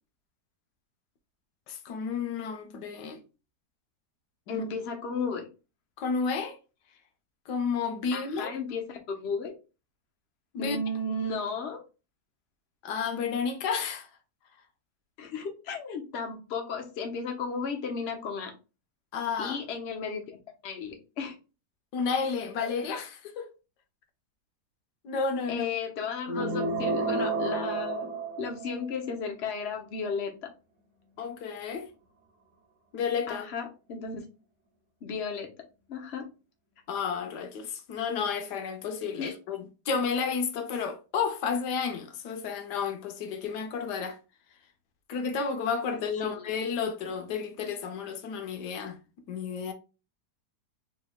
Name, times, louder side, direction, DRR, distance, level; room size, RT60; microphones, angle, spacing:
voice 1, 1.7-3.2 4.5-4.6 6.0-6.6 7.5-8.6 10.5-10.8 12.8-14.1 19.1-19.6 21.9-23.5 25.0-25.7 31.2-31.9 32.9-33.5 36.9-44.2 45.1-49.0 49.3-49.7, left 5 dB, 85° left, 1.3 m, -31 dB
voice 2, 4.5-5.5 8.1-9.5 10.6-11.8 15.2-18.5 19.4-20.2 20.6-21.3 25.5-30.5 33.3-34.2 35.0-35.5 35.9-36.3 39.2-39.4 46.2-46.4, left 4 dB, 50° left, 1.0 m, -34 dB
sound 1, 26.3-28.9, right 3 dB, 50° right, 1.1 m, -30 dB
5.1 x 3.2 x 2.3 m
omnidirectional pair, 1.8 m